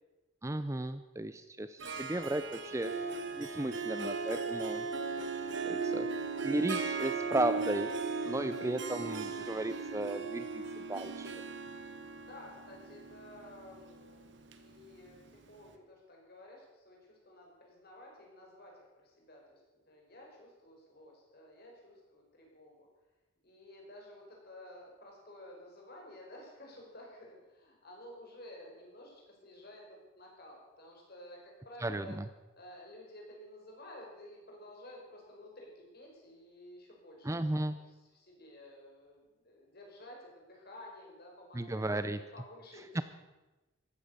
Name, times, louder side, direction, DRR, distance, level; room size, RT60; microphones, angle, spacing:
voice 1, 0.4-2.9 3.4-4.9 5.7-6.1 6.4-7.9 8.2-11.3 31.8-32.2 37.2-37.8 41.5-42.2 42.9-43.0, right 2 dB, 15° right, 11 dB, 0.5 m, -35 dB
Harp, 1.8-15.4, right 4 dB, 60° right, 1.4 m, -37 dB
voice 2, 12.3-19.6 19.9-22.9 23.4-32.2 32.5-43.0, left 1 dB, 50° left, -1 dB, 5.3 m, -53 dB
15.0 x 13.0 x 6.7 m, 1.1 s
head